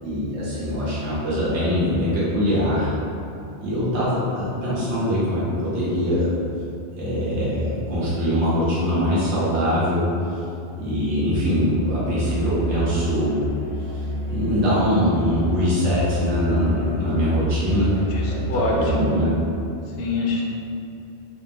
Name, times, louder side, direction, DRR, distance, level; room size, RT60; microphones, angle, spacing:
voice 1, 0.0-2.9 3.6-6.3 7.0-10.4 10.8-13.4 13.8-17.9 18.3-19.4, equal, 80° right, -10 dB, 1.3 m, -23 dB
Musical instrument, 12.1-19.0, right 2 dB, 15° left, 0.6 m, -29 dB
voice 2, 18.1-19.2 19.9-20.4, left 3 dB, 85° left, -2 dB, 0.9 m, -25 dB
3.3 x 2.3 x 2.9 m, 2.7 s
omnidirectional pair, 1.2 m